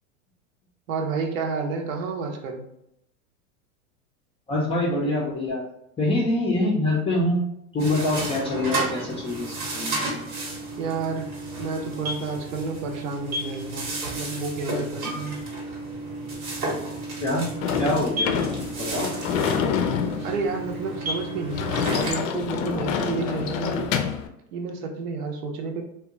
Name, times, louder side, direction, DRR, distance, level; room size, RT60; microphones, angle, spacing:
voice 1, 0.9-2.7 10.8-11.3 11.6-15.4 20.2-23.9 24.5-25.8, right 4 dB, 70° right, 3 dB, 0.7 m, -30 dB
voice 2, 4.5-5.6 6.0-7.4 7.7-10.1 17.2-17.5 17.8-18.3 18.8-19.1, left 1 dB, 15° left, -4 dB, 0.4 m, -25 dB
sound 1, 7.8-22.1, right 2 dB, 90° right, 1.1 m, -32 dB
Sliding door / Slam, 17.6-24.3, left 7 dB, 65° left, 0.5 m, -27 dB
2.7 x 2.2 x 2.5 m, 0.80 s
hypercardioid pair, 110°, 42 cm